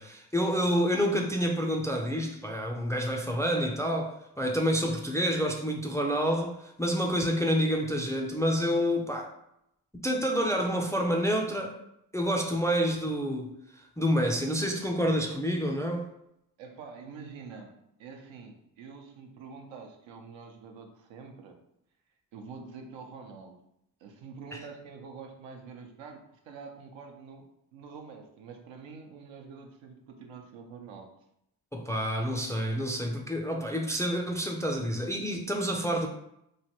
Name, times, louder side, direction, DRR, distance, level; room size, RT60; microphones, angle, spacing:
voice 1, 0.0-9.3 9.9-11.7 12.1-13.5 14.0-16.1 24.5-24.6 31.7-36.1, equal, 5° left, 0.3 m, -28 dB
voice 2, 16.6-21.6 22.3-23.5 24.0-26.2 26.5-27.5 27.7-31.1, right 5 dB, 75° right, 0.7 m, -46 dB
3.1 x 2.1 x 2.9 m
supercardioid pair, 55°, 45 cm